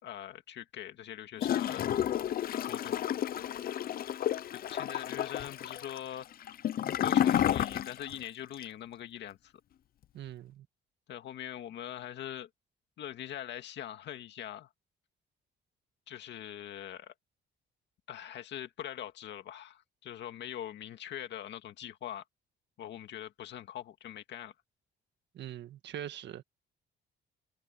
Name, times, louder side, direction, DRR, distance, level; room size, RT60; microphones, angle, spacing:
voice 1, 0.0-1.9 2.6-3.0 4.5-6.3 7.0-9.5 11.1-12.5 13.0-14.7 16.1-17.1 18.1-22.2 22.8-24.5, left 11 dB, 70° left, 2.1 m, -42 dB
Gurgling / Toilet flush, 1.4-8.2 8.5-8.6, left 10 dB, 55° left, 0.6 m, -31 dB
voice 2, 10.1-10.7 25.3-26.4, right 11 dB, 70° right, 1.7 m, -42 dB
cardioid pair, 130°, 19 cm